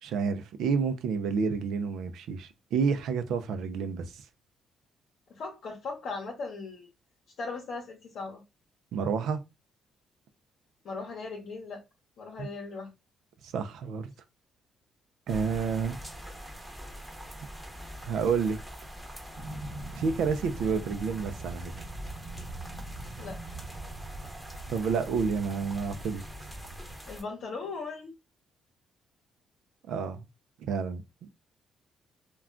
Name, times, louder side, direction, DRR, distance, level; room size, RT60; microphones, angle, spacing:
voice 1, 0.0-4.2 8.9-9.4 12.4-12.5 13.4-14.1 15.3-16.0 18.0-18.6 19.9-21.8 24.7-26.2 29.9-30.2 30.6-31.0, right 5 dB, 80° right, 0.4 m, -29 dB
voice 2, 5.3-6.9 7.4-8.4 10.8-11.8 12.2-12.9 23.2-23.4 27.1-28.1, left 4 dB, 70° left, 0.8 m, -38 dB
sound 1, 15.3-27.2, equal, 5° right, 0.8 m, -44 dB
sound 2, 19.3-26.9, right 1 dB, 45° right, 1.1 m, -42 dB
2.3 x 2.2 x 3.6 m
cardioid pair, 90°, 0 cm